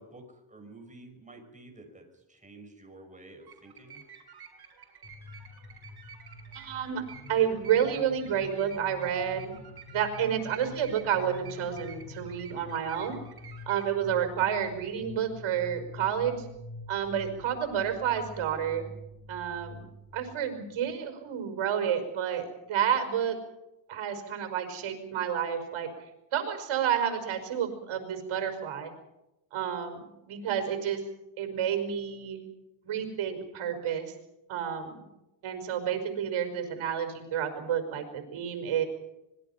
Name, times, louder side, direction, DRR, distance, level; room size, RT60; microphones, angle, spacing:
voice 1, 0.0-4.1, right 2 dB, 15° right, 4 dB, 6.1 m, -50 dB
sound 1, 3.4-14.0, right 7 dB, 50° right, 6.8 m, -51 dB
sound 2, 5.0-21.0, left 3 dB, 35° left, 7.5 m, -47 dB
voice 2, 6.5-7.0 7.3-9.6 9.9-13.2 13.7-16.5 16.9-18.9 19.3-23.4 23.9-25.9 26.3-28.9 29.5-31.0 31.4-32.4 32.8-34.1 34.5-35.0 35.4-38.9, right 9 dB, 75° right, 7 dB, 5.4 m, -30 dB
25.5 x 21.0 x 5.8 m, 0.92 s
cardioid pair, 110°, 48 cm